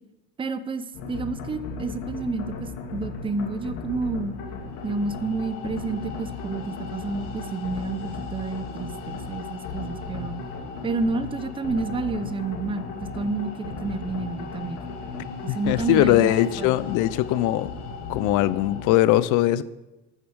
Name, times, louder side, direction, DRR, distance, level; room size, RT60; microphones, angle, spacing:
voice 1, 0.4-4.4 4.8-10.4 10.8-12.9 13.2-14.8 15.4-16.7, right 3 dB, 15° right, 0.7 m, -30 dB
sound 1, 0.9-18.9, left 4 dB, 85° left, 3.1 m, -36 dB
voice 2, 15.5-17.7 18.1-19.6, left 14 dB, 60° left, 0.7 m, -21 dB
14.0 x 6.9 x 6.4 m
cardioid pair, 130°, 34 cm